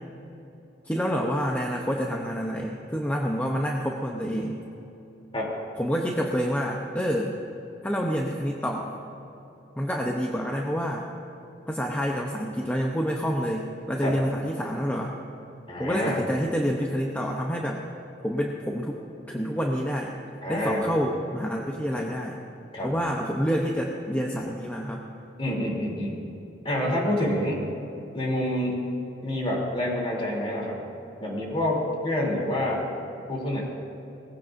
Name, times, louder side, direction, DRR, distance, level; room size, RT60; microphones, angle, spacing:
voice 1, 0.8-4.6 5.8-7.4 7.8-9.0 9.8-11.1 11.7-15.2 15.8-17.8 18.2-19.0 19.3-20.1 20.5-22.4 22.8-25.0 26.8-27.1, equal, 10° left, 0 dB, 0.8 m, -28 dB
voice 2, 15.7-16.2 20.4-20.9 22.7-22.9 25.4-26.2 26.6-27.6 28.1-28.8 29.2-30.8 31.2-32.8 33.3-33.6, left 1 dB, 30° left, -3 dB, 3.1 m, -27 dB
19.5 x 15.5 x 2.6 m, 2.9 s
head